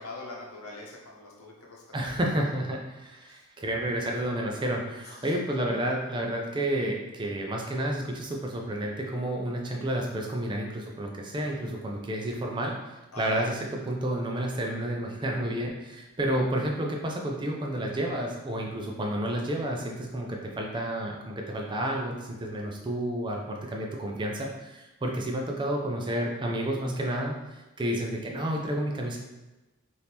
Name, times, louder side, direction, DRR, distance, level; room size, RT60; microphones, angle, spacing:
voice 1, 0.0-2.2 3.3-3.4 5.0-5.3 13.1-13.4, left 2 dB, 85° left, -2 dB, 0.8 m, -43 dB
voice 2, 1.9-12.7 13.2-29.2, right 1 dB, 20° right, 0 dB, 0.4 m, -30 dB
3.4 x 2.6 x 2.9 m, 1.1 s
head